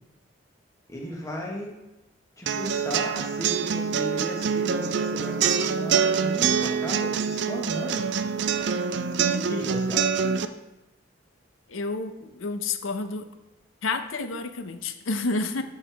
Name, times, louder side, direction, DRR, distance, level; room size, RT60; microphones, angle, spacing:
voice 1, 0.9-1.7 2.4-8.5 9.5-10.2, left 1 dB, 15° left, -2 dB, 1.3 m, -35 dB
sound 1, 2.5-10.4, right 6 dB, 55° right, 0.4 m, -25 dB
voice 2, 11.7-13.3 13.8-15.6, left 3 dB, 80° left, 9 dB, 0.7 m, -30 dB
11.0 x 4.8 x 3.4 m, 0.98 s
head